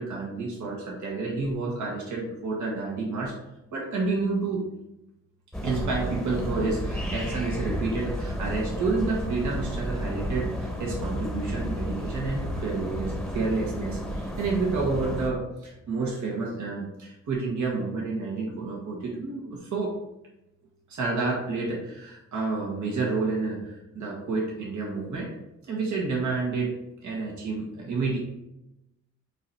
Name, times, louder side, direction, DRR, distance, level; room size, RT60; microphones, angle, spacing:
voice 1, 0.0-3.3 3.7-4.6 5.6-19.9 20.9-25.3 25.7-26.7 27.0-28.2, right 3 dB, 80° right, -3 dB, 1.6 m, -29 dB
sound 1, 5.5-15.3, equal, ahead, 0.9 m, -32 dB
8.0 x 2.8 x 4.3 m, 0.88 s
cardioid pair, 95°, 29 cm